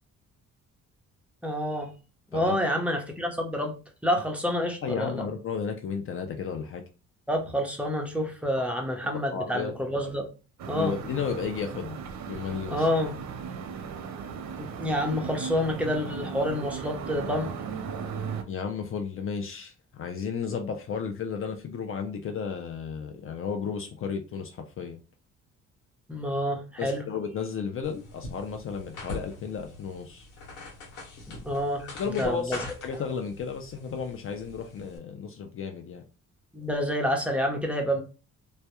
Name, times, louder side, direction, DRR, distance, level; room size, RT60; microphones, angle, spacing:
voice 1, 1.4-1.9 2.3-3.8 4.0-5.2 7.3-10.3 10.7-10.9 12.7-13.2 14.6-17.5 26.1-27.0 31.3-32.6 36.5-38.0, equal, 5° right, 0.6 m, -28 dB
voice 2, 4.8-6.8 8.6-8.7 9.3-9.8 10.7-12.0 12.3-12.9 18.5-25.0 26.8-30.3 31.8-32.5 32.8-36.0, left 6 dB, 45° left, 0.4 m, -33 dB
sound 1, 10.6-18.4, right 6 dB, 65° right, 0.5 m, -37 dB
sound 2, 27.8-35.0, left 2 dB, 90° left, 0.9 m, -43 dB
2.2 x 2.1 x 2.9 m
cardioid pair, 90°, 30 cm